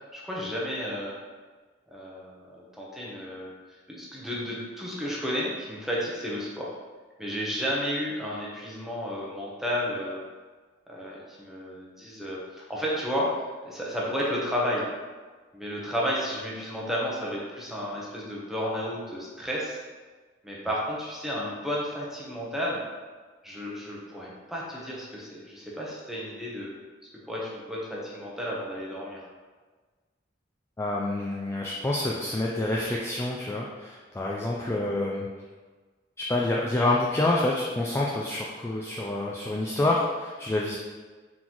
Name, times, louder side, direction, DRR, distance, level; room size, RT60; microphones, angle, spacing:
voice 1, 0.1-1.2 1.9-3.5 3.9-6.8 7.2-10.2 10.9-14.8 15.5-19.8 20.4-22.8 23.4-26.7 27.3-29.3 34.6-34.7, equal, ahead, -5 dB, 0.8 m, -32 dB
voice 2, 30.8-35.3 36.3-40.8, left 2 dB, 15° left, -3 dB, 0.3 m, -27 dB
3.9 x 3.9 x 3.0 m, 1.4 s
head